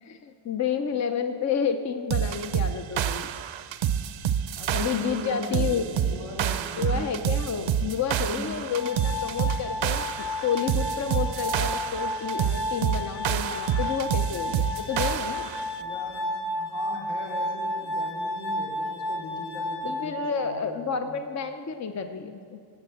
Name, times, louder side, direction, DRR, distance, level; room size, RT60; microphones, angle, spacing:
voice 1, 0.0-3.3 4.7-5.8 6.8-15.5 19.8-22.6, left 7 dB, 35° left, 7 dB, 0.6 m, -30 dB
sound 1, 2.1-15.7, right 9 dB, 70° right, 0.7 m, -28 dB
voice 2, 4.6-7.1 8.3-8.5 15.8-16.3 16.5-21.2, left 1 dB, 75° left, -4 dB, 4.4 m, -39 dB
Glass, 8.7-20.7, left 1 dB, 55° left, 1.9 m, -32 dB
16.5 x 8.3 x 7.9 m, 2.4 s
wide cardioid pair, 155°, 49 cm